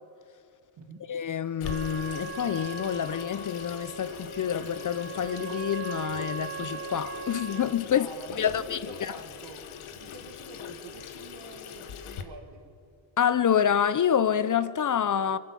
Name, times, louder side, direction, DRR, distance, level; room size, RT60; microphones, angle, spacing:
voice 1, 1.1-8.1 8.4-9.2 13.2-15.4, left 8 dB, 40° left, 0.5 m, -27 dB
Water tap faucet / Sink (filling or washing), 1.6-12.2, left 8 dB, 85° left, 1.1 m, -41 dB
Trumpet, 1.6-7.8, right 4 dB, 30° right, 1.0 m, -39 dB
voice 2, 7.9-9.7 9.9-12.6, right 4 dB, 65° right, 2.0 m, -47 dB
22.0 x 8.5 x 7.5 m
cardioid pair, 75°, 48 cm